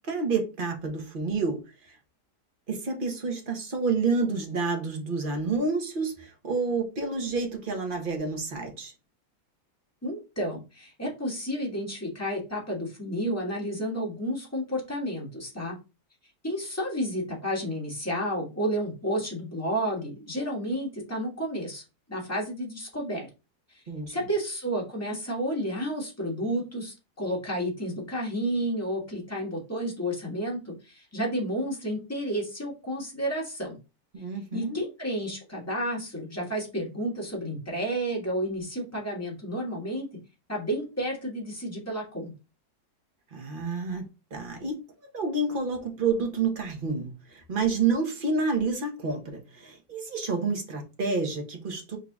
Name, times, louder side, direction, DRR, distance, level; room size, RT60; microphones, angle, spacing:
voice 1, 0.1-1.6 2.7-8.9 23.9-24.2 34.1-34.8 43.3-44.0 44.3-44.8 45.1-52.0, right 4 dB, 35° right, 1.0 m, -29 dB
voice 2, 10.0-15.8 16.4-21.8 22.1-23.3 23.7-23.8 24.1-33.8 34.5-40.1 40.5-42.3, equal, 10° left, 1.7 m, -31 dB
4.8 x 3.8 x 2.4 m
omnidirectional pair, 1.8 m